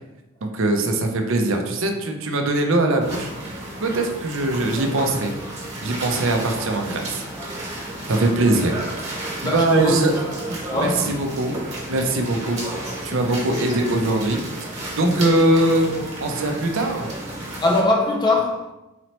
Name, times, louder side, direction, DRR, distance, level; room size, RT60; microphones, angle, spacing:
voice 1, 0.4-3.3 3.8-5.3 5.8-7.2 8.1-8.8 9.2-10.1 10.8-11.6 11.9-12.6 13.0-14.4 14.9-15.9 16.2-17.1, right 2 dB, 60° right, 0.5 m, -21 dB
sound 1, 3.0-17.8, right 1 dB, 30° right, 1.2 m, -32 dB
voice 2, 9.4-10.1 10.7-11.1 13.7-13.8 17.6-18.7, left 2 dB, 20° left, 0.3 m, -21 dB
4.0 x 2.9 x 3.0 m
head